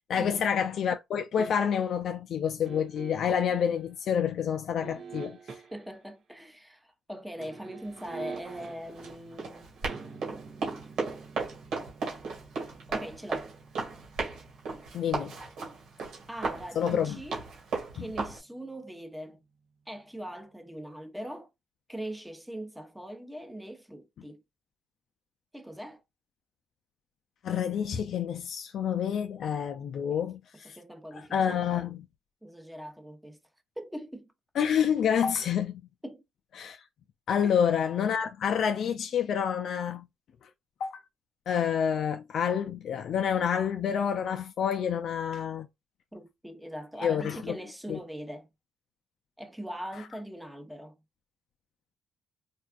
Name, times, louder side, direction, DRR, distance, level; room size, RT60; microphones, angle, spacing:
voice 1, 0.0-5.4 14.9-15.3 16.8-17.2 18.0-18.1 27.4-30.8 31.3-32.1 34.6-35.8 36.6-36.8 37.3-40.1 40.8-41.0 41.5-45.7 47.0-47.5 47.9-48.0, left 8 dB, 65° left, 0.3 m, -28 dB
sound 1, 1.4-1.9 2.6-3.8 4.8-6.0 7.2-18.2 18.5-18.6, right 6 dB, 55° right, 0.7 m, -47 dB
voice 2, 5.7-9.7 12.9-13.5 16.3-17.4 17.9-19.4 19.9-21.5 21.9-24.4 25.5-26.0 30.1-30.2 30.5-31.7 32.4-33.4 33.8-34.3 36.0-36.2 37.4-37.6 46.1-48.5 49.4-51.0, equal, 5° right, 0.8 m, -41 dB
Run, 7.8-18.4, right 4 dB, 80° right, 2.0 m, -36 dB
4.3 x 2.3 x 2.4 m
cardioid pair, 90°, 0 cm